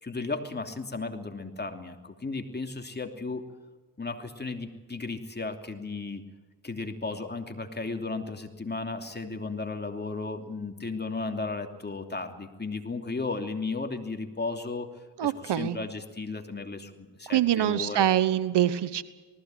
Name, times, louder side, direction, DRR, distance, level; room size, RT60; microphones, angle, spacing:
voice 1, 0.0-3.4 4.0-6.2 6.6-14.9 15.2-18.1, left 3 dB, 25° left, 5 dB, 2.9 m, -35 dB
voice 2, 15.2-15.8 17.3-19.0, right 11 dB, 70° right, 15 dB, 1.2 m, -24 dB
19.5 x 15.5 x 9.1 m, 1.3 s
supercardioid pair, 60°, 43 cm